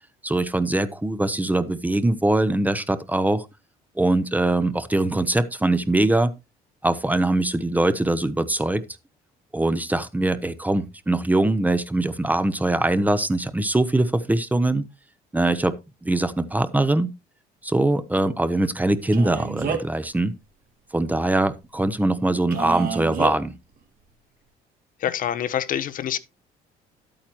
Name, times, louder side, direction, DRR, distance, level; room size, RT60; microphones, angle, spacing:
voice 1, 0.2-3.5 4.0-6.3 6.8-8.8 9.5-14.9 15.3-15.7 16.0-17.1 17.6-20.3 20.9-23.5, right 2 dB, 10° right, 0.8 m, -22 dB
Male speech man speaking, 19.1-20.0 22.5-23.3, right 6 dB, 60° right, 2.3 m, -28 dB
voice 2, 25.0-26.2, left 10 dB, 55° left, 0.8 m, -26 dB
11.5 x 8.8 x 3.0 m
cardioid pair, 110°, 17 cm